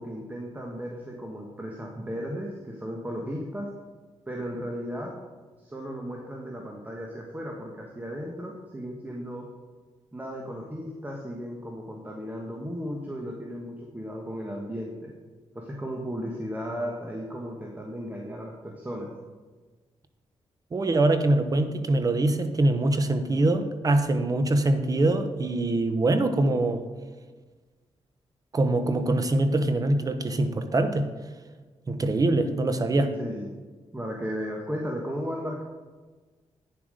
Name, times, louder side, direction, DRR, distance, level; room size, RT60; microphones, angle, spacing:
voice 1, 0.0-3.7 4.3-5.1 5.6-9.5 10.1-15.1 15.5-19.1 33.2-33.5 33.9-35.6, equal, 15° right, -1 dB, 1.4 m, -35 dB
voice 2, 20.7-26.8 28.5-31.1 31.9-33.1, right 2 dB, 35° right, 8 dB, 1.0 m, -23 dB
9.4 x 7.4 x 5.1 m, 1.3 s
cardioid pair, 95°, 11 cm